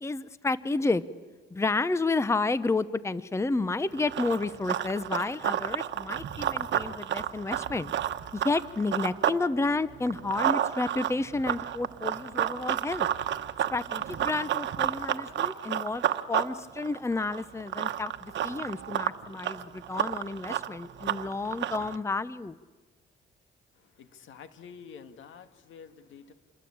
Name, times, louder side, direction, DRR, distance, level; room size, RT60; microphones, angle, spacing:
voice 1, 0.0-1.0 1.5-7.9 8.3-13.1 13.7-22.6, left 3 dB, 15° left, 16 dB, 0.8 m, -30 dB
Run, 3.9-9.4 9.8-22.0, right 11 dB, 65° right, 1.2 m, -31 dB
voice 2, 23.7-26.3, left 6 dB, 75° left, 10 dB, 2.0 m, -49 dB
28.0 x 21.5 x 8.7 m, 1.3 s
cardioid pair, 90°, 20 cm